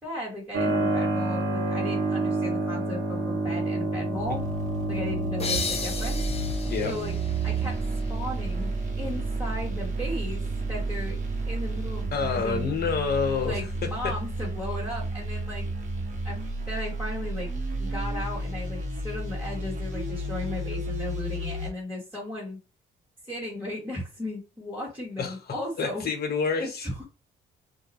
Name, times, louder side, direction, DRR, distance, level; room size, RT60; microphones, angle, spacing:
voice 1, 0.0-4.5 4.9-6.2 6.8-7.1 7.4-7.8 8.1-10.4 10.7-11.2 11.5-12.7 13.5-15.6 16.2-16.4 16.7-17.5 17.8-22.6 23.3-26.0 26.6-27.0, left 1 dB, 10° right, 1.3 m, -36 dB
Keyboard (musical), 0.5-12.9, right 2 dB, 85° right, 1.0 m, -31 dB
sound 1, 4.1-21.7, right 2 dB, 40° right, 1.0 m, -31 dB
sound 2, 5.4-8.8, left 5 dB, 30° left, 0.6 m, -35 dB
voice 2, 6.6-7.0 12.1-14.1 25.2-27.0, left 5 dB, 50° left, 0.9 m, -29 dB
2.3 x 2.2 x 2.9 m
cardioid pair, 90°, 20 cm